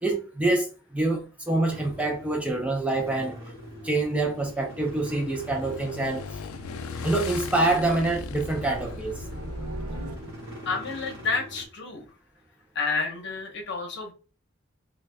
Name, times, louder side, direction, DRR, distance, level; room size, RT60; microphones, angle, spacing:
voice 1, 0.0-3.4 3.8-6.2 7.0-9.2, right 2 dB, 5° right, 0.4 m, -26 dB
sound 1, 1.7-11.7, equal, 25° right, 1.7 m, -44 dB
Motorcycle / Engine, 4.0-11.1, left 5 dB, 75° left, 0.4 m, -40 dB
sound 2, 6.1-10.7, right 1 dB, 85° right, 0.7 m, -40 dB
voice 2, 10.6-12.1 12.7-14.1, left 4 dB, 55° left, 0.8 m, -30 dB
3.1 x 2.3 x 3.4 m
head